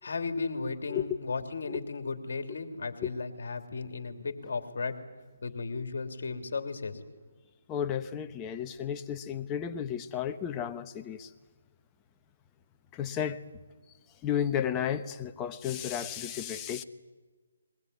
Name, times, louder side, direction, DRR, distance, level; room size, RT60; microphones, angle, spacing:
voice 1, 0.0-5.0 5.4-7.1, left 4 dB, 65° left, 2.9 m, -35 dB
voice 2, 7.7-11.3 13.0-13.4 14.2-16.8, left 9 dB, 15° left, 1.1 m, -33 dB
22.0 x 20.0 x 9.5 m
hypercardioid pair, 155°, 0 cm